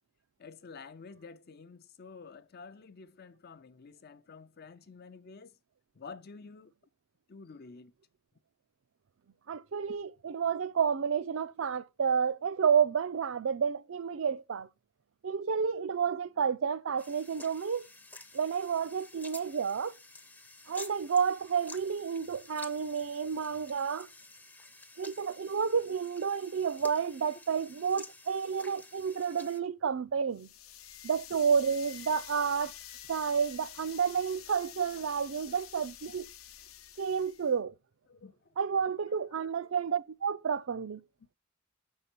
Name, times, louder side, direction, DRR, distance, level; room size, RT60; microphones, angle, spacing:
voice 1, 0.4-5.5 5.9-6.7 7.3-7.9 35.0-35.2 38.1-38.5 39.1-39.7, left 4 dB, 50° left, 0.6 m, -50 dB
voice 2, 9.5-14.7 15.2-17.9 18.3-19.9 20.7-24.1 25.0-30.5 31.0-32.7 33.1-36.3 37.0-37.7 38.6-41.0, right 6 dB, 70° right, 0.5 m, -30 dB
sound 1, 17.0-29.6, left 2 dB, 10° left, 0.6 m, -51 dB
sound 2, 30.3-37.5, left 11 dB, 85° left, 0.8 m, -48 dB
6.7 x 5.6 x 4.5 m
head